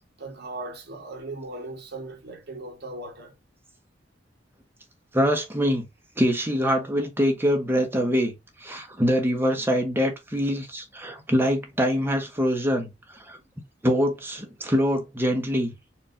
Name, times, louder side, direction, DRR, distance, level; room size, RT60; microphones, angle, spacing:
voice 1, 0.2-3.3, right 2 dB, 60° right, 1.3 m, -38 dB
voice 2, 5.1-5.9 6.2-8.3 8.6-12.9 13.3-13.4 13.8-15.7, equal, 10° right, 0.9 m, -24 dB
4.5 x 2.6 x 3.7 m
head